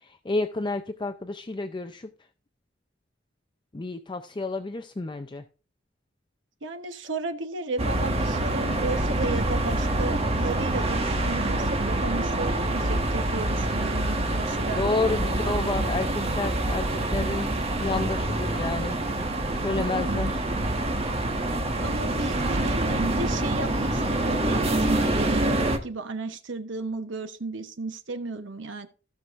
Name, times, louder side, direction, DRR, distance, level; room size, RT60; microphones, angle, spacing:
voice 1, 0.0-2.1 3.7-5.4 14.7-17.5 17.8-19.0 19.5-20.4, left 3 dB, 25° left, 7 dB, 0.5 m, -30 dB
voice 2, 6.6-14.8 19.7-20.2 21.8-28.9, right 3 dB, 75° right, 8 dB, 1.1 m, -34 dB
sound 1, 7.8-25.8, right 1 dB, 35° right, 1.4 m, -26 dB
16.0 x 6.1 x 2.5 m, 0.38 s
head